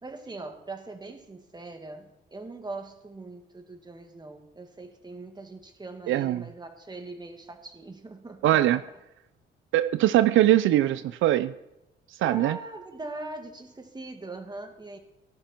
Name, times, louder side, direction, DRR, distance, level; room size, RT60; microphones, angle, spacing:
voice 1, 0.0-8.8 12.2-15.0, right 2 dB, 20° right, 5 dB, 2.4 m, -41 dB
voice 2, 6.1-6.4 8.4-8.8 9.7-11.5 12.2-12.6, right 13 dB, 80° right, 14 dB, 0.6 m, -21 dB
18.0 x 10.5 x 4.6 m, 0.92 s
cardioid pair, 90°, 20 cm